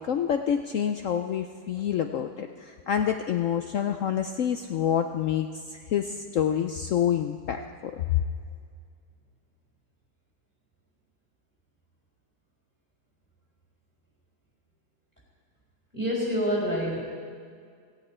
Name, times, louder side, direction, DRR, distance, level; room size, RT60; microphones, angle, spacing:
voice 1, 0.0-8.2, left 9 dB, 85° left, 6 dB, 0.7 m, -27 dB
voice 2, 15.9-17.0, equal, 25° left, -3 dB, 4.0 m, -27 dB
16.5 x 16.0 x 4.4 m, 2.1 s
omnidirectional pair, 2.0 m